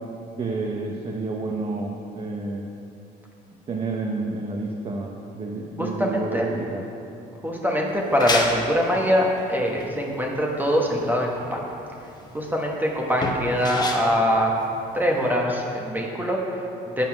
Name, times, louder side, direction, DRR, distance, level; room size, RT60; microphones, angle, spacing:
voice 1, 0.4-2.7 3.7-6.8, right 3 dB, 35° right, 0 dB, 0.7 m, -30 dB
voice 2, 5.8-6.5 7.4-11.6 12.3-14.5 14.9-17.0, equal, 10° right, -1 dB, 1.0 m, -23 dB
sound 1, 7.9-15.3, left 2 dB, 25° left, 0.9 m, -32 dB
7.5 x 5.4 x 6.0 m, 2.7 s
cardioid pair, 110°, 17 cm